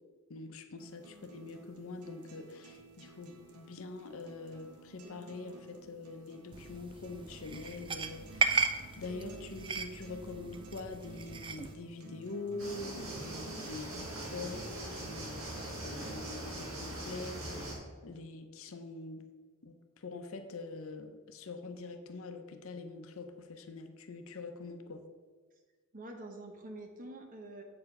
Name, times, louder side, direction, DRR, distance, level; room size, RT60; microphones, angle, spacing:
voice 1, 0.3-8.7 9.0-17.7 18.0-19.3 19.6-25.0, left 3 dB, 65° left, 7 dB, 0.7 m, -44 dB
sound 1, 0.8-16.8, right 3 dB, 85° right, 0.8 m, -53 dB
sound 2, 6.5-11.7, right 4 dB, 20° right, 0.3 m, -36 dB
sound 3, 12.6-17.8, right 1 dB, 65° right, 2.0 m, -41 dB
voice 2, 25.9-27.6, right 2 dB, 40° right, 3 dB, 1.0 m, -46 dB
7.5 x 4.8 x 5.3 m, 1.5 s
head